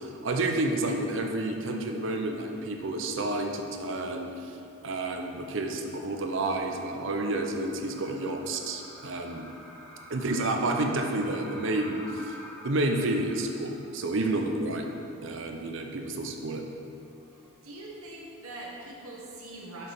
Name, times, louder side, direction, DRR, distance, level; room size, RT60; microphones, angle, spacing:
voice 1, 0.0-4.6 4.8-9.5 10.1-12.4 12.6-14.9 15.2-16.6, right 2 dB, 55° right, 3 dB, 0.5 m, -30 dB
sound 1, 4.8-14.4 14.7-14.8 16.9-17.5, equal, 5° left, 0.8 m, -49 dB
voice 2, 17.6-19.9, right 2 dB, 75° right, -3 dB, 1.2 m, -42 dB
6.5 x 5.8 x 3.5 m, 2.8 s
head